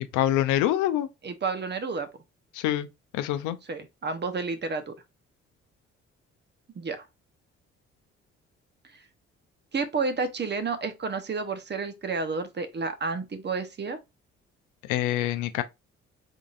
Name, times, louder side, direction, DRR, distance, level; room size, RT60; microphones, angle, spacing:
voice 1, 0.1-1.1 2.5-2.9 3.1-3.6 14.9-15.6, left 13 dB, 85° left, 0.5 m, -25 dB
voice 2, 1.2-2.1 3.7-4.9 6.7-7.0 9.7-14.0, right 4 dB, 35° right, 0.9 m, -30 dB
3.8 x 3.7 x 2.4 m
supercardioid pair, 55°, 30 cm